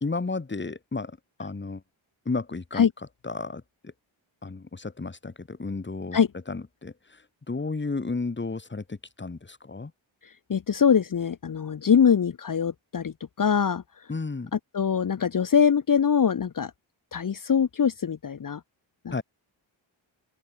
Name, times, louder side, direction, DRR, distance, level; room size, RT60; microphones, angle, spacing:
voice 1, 0.0-1.1 1.4-1.8 2.3-2.9 3.2-3.6 4.4-6.2 6.5-6.9 7.5-9.9 14.1-14.5 19.1-19.2, left 3 dB, 25° left, 2.2 m, -32 dB
voice 2, 10.5-13.8 14.5-16.7 17.1-18.6 19.0-19.2, left 7 dB, 40° left, 1.0 m, -23 dB
open air
wide cardioid pair, 155°, 48 cm